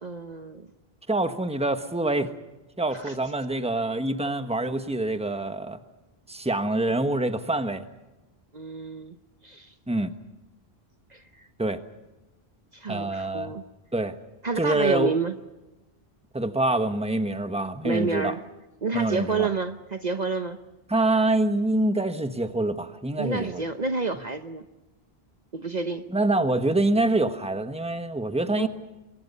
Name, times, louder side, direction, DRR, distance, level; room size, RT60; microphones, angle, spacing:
voice 1, 0.0-0.7 2.9-3.2 4.2-4.3 8.5-9.2 9.4-9.7 11.1-11.5 12.7-13.6 14.4-15.3 17.8-18.4 18.8-20.6 23.2-24.6 25.5-26.0 28.6-28.7, right 4 dB, 45° right, 8 dB, 1.0 m, -29 dB
voice 2, 1.1-2.3 2.8-5.8 6.3-7.8 9.9-10.1 11.6-11.8 12.9-13.5 13.9-14.1 14.6-15.1 16.3-18.3 18.9-19.5 20.9-23.6 26.1-28.7, right 2 dB, 5° right, 8 dB, 1.3 m, -25 dB
28.5 x 23.0 x 5.5 m, 1.0 s
omnidirectional pair, 1.1 m